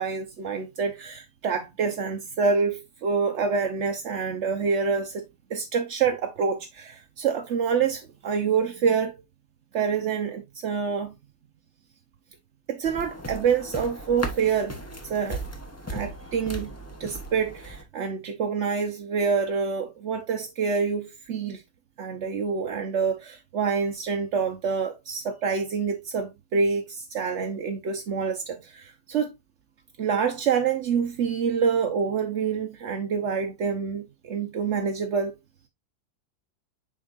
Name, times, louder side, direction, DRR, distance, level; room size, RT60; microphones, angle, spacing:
voice 1, 0.0-5.2 5.5-9.1 9.7-11.1 12.7-14.8 15.0-15.4 15.9-16.7 17.0-21.6 22.0-29.3 30.0-35.3, right 6 dB, 60° right, 0.7 m, -27 dB
sound 1, 12.8-17.8, right 1 dB, 15° left, 0.5 m, -37 dB
7.4 x 5.1 x 2.5 m
omnidirectional pair, 2.1 m